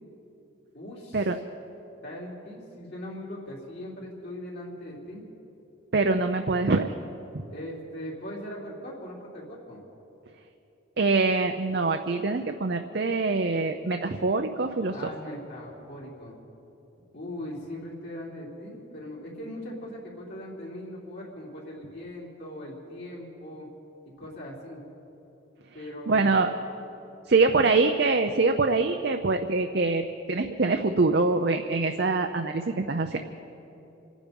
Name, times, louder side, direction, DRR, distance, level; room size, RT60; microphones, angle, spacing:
voice 1, 0.7-1.3 2.0-5.2 7.5-9.8 14.9-16.3 17.1-23.7 24.2-24.8 25.7-26.4 27.5-27.7, left 1 dB, 60° left, -5 dB, 3.5 m, -40 dB
voice 2, 5.9-6.9 7.3-7.4 11.0-15.1 26.1-26.5 27.3-33.2, right 3 dB, 55° right, 5 dB, 0.6 m, -24 dB
26.5 x 10.0 x 5.3 m, 2.9 s
head